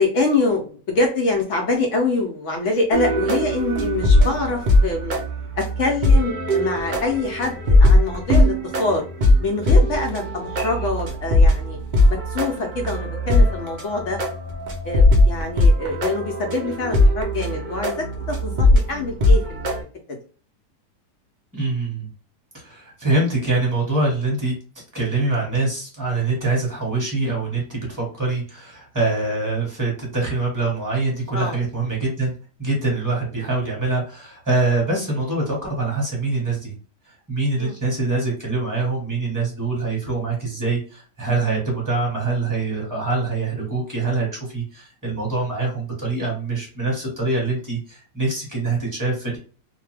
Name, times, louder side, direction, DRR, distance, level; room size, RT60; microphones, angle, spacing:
voice 1, 0.0-5.2 5.6-9.0 9.4-11.8 12.1-14.2 14.8-19.7 20.1-20.2 31.3-31.6 37.6-37.8, left 3 dB, 70° left, 2 dB, 0.7 m, -25 dB
sound 1, 2.9-19.8, left 1 dB, 75° right, 0.4 m, -19 dB
voice 2, 21.5-22.1 22.5-32.3 32.6-36.7 37.1-49.4, right 3 dB, 15° right, -3 dB, 1.1 m, -24 dB
2.7 x 2.2 x 3.2 m, 0.39 s
omnidirectional pair, 1.8 m